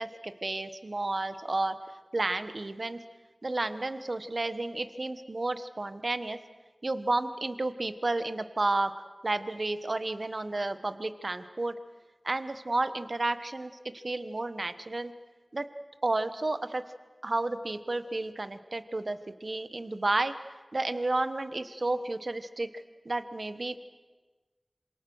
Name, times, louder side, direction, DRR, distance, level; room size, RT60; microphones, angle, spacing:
voice 1, 0.0-1.8 2.1-3.0 3.4-6.4 6.8-8.9 9.2-11.7 12.2-15.1 15.5-15.7 16.0-16.8 17.2-20.3 20.7-23.8, right 2 dB, 65° right, 11 dB, 1.2 m, -31 dB
27.0 x 26.5 x 6.4 m, 1.3 s
wide cardioid pair, 50°, 0 cm